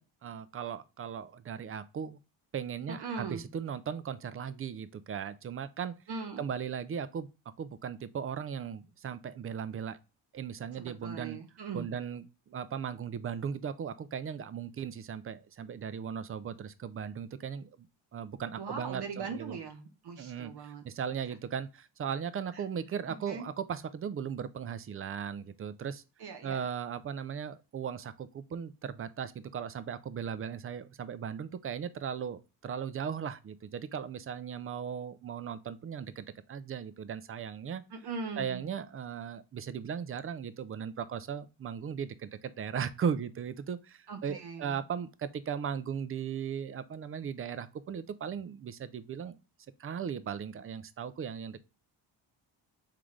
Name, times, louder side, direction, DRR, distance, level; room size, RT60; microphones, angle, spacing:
voice 1, 0.0-2.2 2.5-5.9 6.4-7.3 7.6-10.0 10.3-11.4 11.7-17.9 18.1-19.6 20.2-26.0 26.4-37.8 38.4-49.4 49.8-51.6, right 7 dB, 30° right, 0.4 m, -37 dB
voice 2, 2.9-3.4 6.1-6.4 10.8-11.9 18.6-20.8 22.5-22.6 23.3-23.5 26.2-26.6 37.9-38.7 44.1-44.8, right 5 dB, 55° right, 0.9 m, -40 dB
3.8 x 3.6 x 3.1 m
cardioid pair, 75°, 48 cm